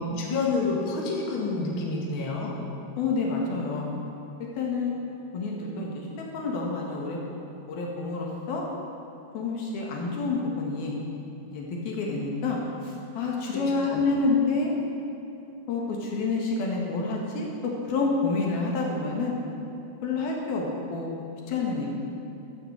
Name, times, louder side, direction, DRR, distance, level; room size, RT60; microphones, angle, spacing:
voice 1, 0.0-2.6 13.8-14.0, left 3 dB, 40° left, -3 dB, 2.2 m, -28 dB
voice 2, 3.0-3.9 4.6-4.9 5.3-6.1 6.3-7.2 7.7-8.7 9.3-10.9 11.5-14.7 15.7-19.3 20.0-21.1 21.5-21.9, left 3 dB, 70° left, -1 dB, 3.4 m, -28 dB
13.5 x 9.4 x 8.0 m, 2.9 s
omnidirectional pair, 4.8 m